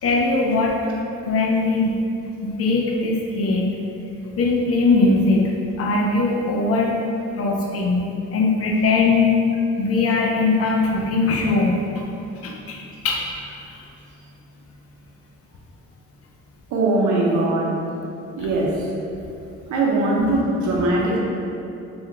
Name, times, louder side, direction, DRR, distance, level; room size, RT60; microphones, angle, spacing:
voice 1, 0.0-0.8 1.2-1.9 2.4-3.7 4.4-5.5 5.8-7.0 7.4-9.4 9.8-11.8 12.4-13.8, left 3 dB, 50° left, -1 dB, 0.6 m, -20 dB
voice 2, 16.7-17.8 18.4-18.9 19.7-21.2, right 2 dB, 75° right, -3 dB, 0.7 m, -20 dB
3.4 x 2.3 x 2.9 m, 2.7 s
cardioid pair, 90°, 30 cm